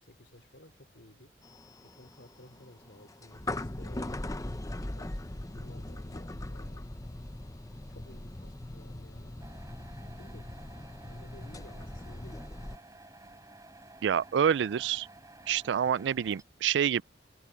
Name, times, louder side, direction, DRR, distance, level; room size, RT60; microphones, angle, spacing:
voice 1, 0.0-1.3 1.8-4.1 4.7-7.0 7.7-9.4 10.1-10.5 11.0-12.4, left 1 dB, 75° left, 4.0 m, -55 dB
sound 1, 1.4-12.8, left 1 dB, 20° left, 0.8 m, -40 dB
sound 2, 9.4-16.4, right 2 dB, 20° right, 5.8 m, -53 dB
voice 2, 14.0-15.1 15.5-17.0, right 8 dB, 80° right, 0.3 m, -27 dB
head